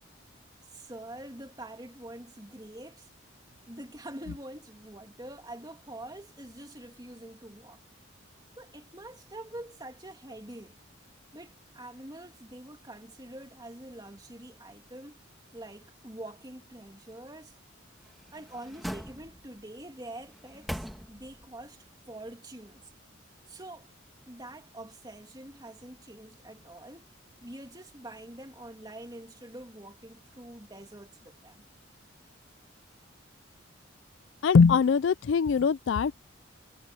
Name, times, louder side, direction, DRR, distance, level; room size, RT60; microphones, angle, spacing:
voice 1, 0.7-3.1 3.6-7.8 8.6-10.8 11.3-15.2 15.5-17.6 18.3-22.9 23.5-23.9 24.3-27.1 27.4-31.7, right 1 dB, 20° right, 2.8 m, -45 dB
sound 1, 17.9-19.7 20.2-21.5 21.9-22.0, equal, ahead, 1.6 m, -41 dB
voice 2, 34.4-36.2, left 5 dB, 65° left, 0.4 m, -22 dB
head